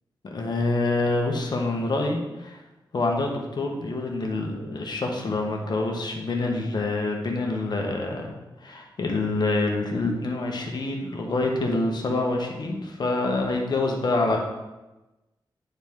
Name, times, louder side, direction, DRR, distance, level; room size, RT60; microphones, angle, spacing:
voice 1, 0.3-2.6 2.9-8.3 8.6-14.4, left 2 dB, 60° left, 1 dB, 1.2 m, -26 dB
9.4 x 4.0 x 3.6 m, 1.0 s
wide cardioid pair, 95°, 8 cm